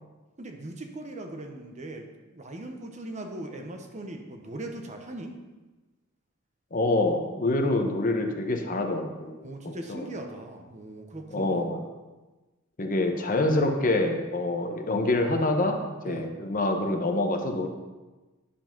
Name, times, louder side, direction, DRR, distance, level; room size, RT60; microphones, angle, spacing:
voice 1, 0.4-5.4 9.4-11.7 16.0-16.3, right 1 dB, 35° right, 4 dB, 0.9 m, -39 dB
voice 2, 6.7-9.4 9.6-10.1 11.3-11.8 12.8-17.7, left 2 dB, 40° left, 3 dB, 0.9 m, -26 dB
10.0 x 4.7 x 6.0 m, 1.2 s
head